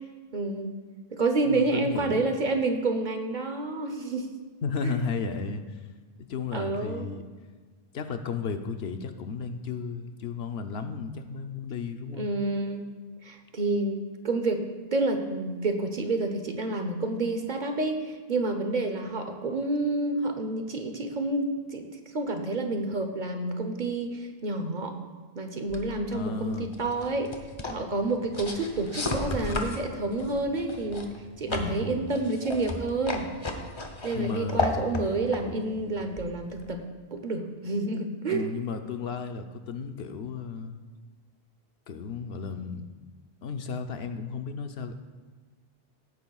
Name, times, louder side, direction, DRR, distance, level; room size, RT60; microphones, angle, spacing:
voice 1, 0.3-0.7 1.1-4.3 4.8-5.0 6.5-7.0 12.1-12.9 13.2-14.0 14.2-14.6 14.9-21.8 22.1-24.9 25.3-27.3 27.7-31.1 31.4-33.3 34.0-36.8 37.1-38.5, right 2 dB, 50° right, 5 dB, 1.0 m, -29 dB
voice 2, 1.4-2.2 4.6-5.6 6.3-7.3 7.9-12.3 26.1-26.7 31.5-32.1 34.1-34.9 38.3-40.8 41.9-42.9 43.4-44.9, left 5 dB, 75° left, 7 dB, 1.0 m, -34 dB
sound 1, 25.7-36.8, left 2 dB, 30° left, 0.8 m, -35 dB
16.5 x 9.4 x 2.4 m, 1.4 s
omnidirectional pair, 1.1 m